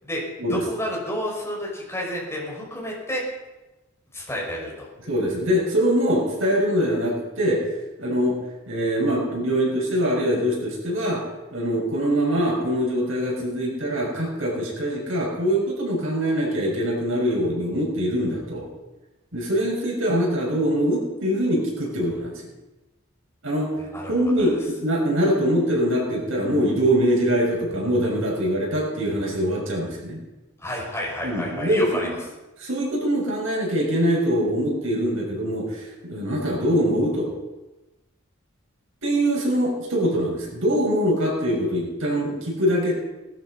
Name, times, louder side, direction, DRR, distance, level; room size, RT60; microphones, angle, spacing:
voice 1, 0.5-3.3 4.1-4.9 23.9-24.1 24.4-24.6 30.6-32.1, equal, 15° left, -3 dB, 5.5 m, -30 dB
voice 2, 5.1-7.6 8.0-8.4 8.7-11.2 11.5-18.7 19.3-22.3 23.4-23.7 24.1-30.2 31.2-32.2 32.6-37.3 39.0-42.9, equal, 75° right, -2 dB, 6.3 m, -23 dB
19.5 x 12.5 x 5.7 m, 1.1 s
head